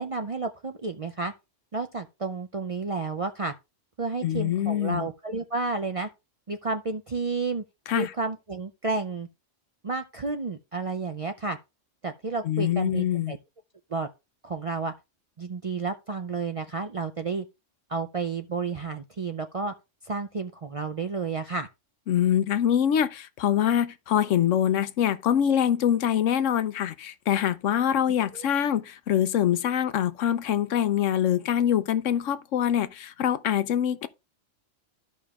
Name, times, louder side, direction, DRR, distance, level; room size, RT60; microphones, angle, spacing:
voice 1, 0.0-1.3 1.7-3.5 4.0-6.1 6.5-7.6 7.9-9.3 9.8-11.6 12.0-13.4 13.9-14.1 14.4-14.9 15.4-17.4 17.9-19.7 20.0-21.7 28.3-28.5, right 4 dB, 45° right, 0.4 m, -31 dB
voice 2, 4.2-5.1 7.9-8.1 12.4-13.3 22.1-34.1, left 10 dB, 85° left, 1.0 m, -24 dB
14.0 x 5.2 x 2.4 m
omnidirectional pair, 1.3 m